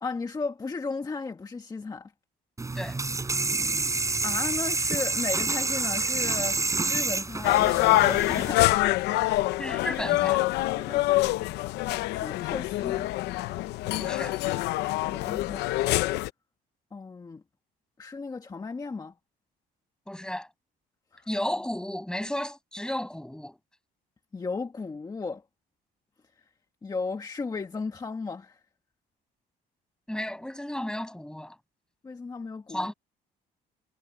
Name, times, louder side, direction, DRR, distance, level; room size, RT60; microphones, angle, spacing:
voice 1, 0.0-2.1 4.2-6.6 6.9-8.7 10.7-11.2 12.1-13.1 15.1-16.0 16.9-17.4 18.0-19.1 21.1-21.3 24.3-25.4 26.8-28.6 32.0-32.9, left 4 dB, 20° left, 1.5 m, -35 dB
sound 1, 2.6-8.5, right 3 dB, 20° right, 3.8 m, -28 dB
sound 2, 7.4-16.3, left 17 dB, 85° left, 0.7 m, -25 dB
voice 2, 9.6-10.4 14.0-14.4 20.1-20.5 21.3-23.6 30.1-31.5 32.7-32.9, left 1 dB, 5° left, 6.2 m, -33 dB
cardioid pair, 110°, 17 cm